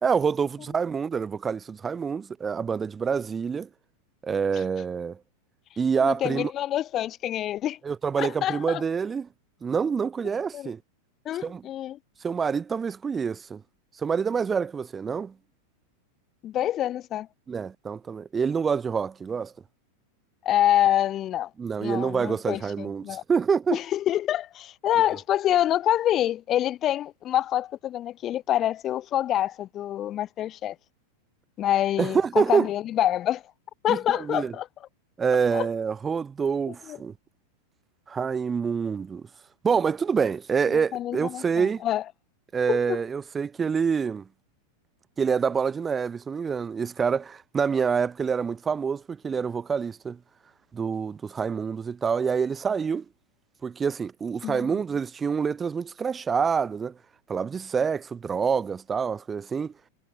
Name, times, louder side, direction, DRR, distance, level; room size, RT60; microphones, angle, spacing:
voice 1, 0.0-3.7 4.2-5.2 5.8-6.5 7.8-9.3 9.6-10.8 11.4-11.6 12.2-13.6 14.0-15.3 17.5-19.5 21.6-23.8 32.0-32.7 33.9-34.5 35.2-37.1 38.1-39.3 39.6-41.8 42.5-44.3 45.2-50.2 50.7-53.0 53.6-56.9 57.3-59.7, right 6 dB, 20° right, 2.4 m, -26 dB
voice 2, 6.0-7.8 8.2-8.8 10.5-10.7 11.3-12.0 16.4-17.3 20.4-21.5 21.8-23.2 23.7-30.8 31.6-33.4 33.8-34.7 35.5-35.7 36.9-37.0 40.7-42.0 42.7-43.0 54.4-54.7, left 12 dB, 30° left, 0.7 m, -26 dB
figure-of-eight pair, 90°, 0 cm